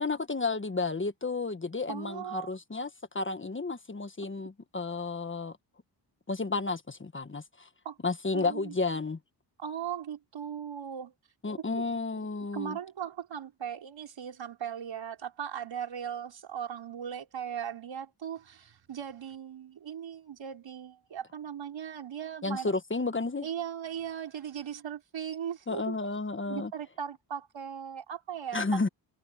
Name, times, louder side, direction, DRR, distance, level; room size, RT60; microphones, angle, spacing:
voice 1, 0.0-5.6 6.3-7.7 8.0-9.2 11.4-12.8 22.4-23.5 25.7-26.7 28.5-28.9, left 3 dB, 25° left, 1.5 m, -32 dB
voice 2, 1.9-2.5 7.8-8.0 8.3-8.7 9.6-11.1 11.6-11.9 12.5-22.7 23.4-26.0 26.4-28.9, right 8 dB, 75° right, 4.7 m, -38 dB
cardioid pair, 75°, 45 cm